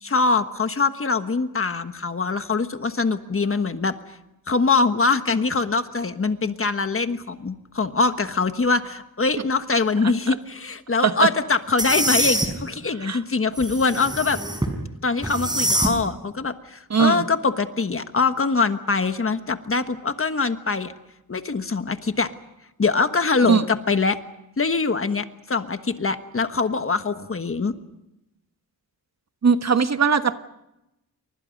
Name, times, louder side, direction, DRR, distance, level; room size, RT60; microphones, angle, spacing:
voice 1, 0.0-3.9 4.5-14.4 15.0-20.9 21.3-22.3 22.8-24.2 24.6-27.7, left 4 dB, 35° left, 9 dB, 1.4 m, -23 dB
sound 1, 11.8-12.5 13.6-14.7 15.2-15.9, right 1 dB, 10° right, 4.8 m, -24 dB
voice 2, 16.9-17.2 23.5-23.6 29.4-30.4, right 6 dB, 45° right, 9 dB, 1.3 m, -19 dB
29.5 x 25.0 x 5.3 m, 0.90 s
wide cardioid pair, 145°, 38 cm